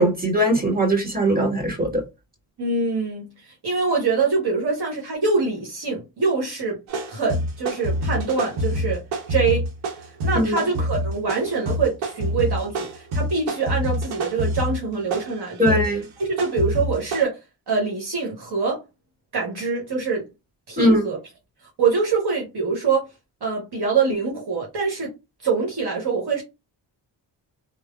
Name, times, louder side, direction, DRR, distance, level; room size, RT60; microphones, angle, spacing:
voice 1, 0.0-2.0 10.3-10.7 15.6-16.0 20.8-21.0, right 1 dB, 20° right, 1.7 m, -20 dB
voice 2, 2.6-6.8 7.1-9.0 9.3-9.7 10.0-15.8 16.2-17.4 17.7-18.8 19.3-20.3 20.7-21.2 21.8-23.1 23.4-25.1 25.4-26.4, right 4 dB, 55° right, 1.1 m, -24 dB
sound 1, 6.9-17.2, equal, 85° right, 0.8 m, -27 dB
3.2 x 2.0 x 2.3 m
supercardioid pair, 45°, 47 cm